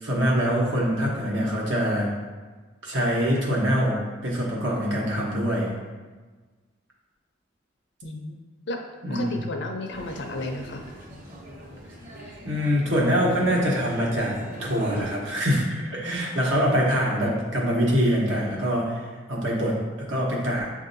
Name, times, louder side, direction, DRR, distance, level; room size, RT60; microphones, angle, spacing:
voice 1, 0.0-2.1 2.8-5.7 9.0-9.4 12.4-20.7, equal, 75° right, -3 dB, 1.1 m, -24 dB
voice 2, 8.0-8.4 8.7-8.8 9.1-10.8 16.6-17.7, left 2 dB, 65° left, 3 dB, 0.6 m, -34 dB
sound 1, 9.9-15.0, equal, 45° right, 1.0 m, -41 dB
7.3 x 2.7 x 2.6 m, 1.3 s
head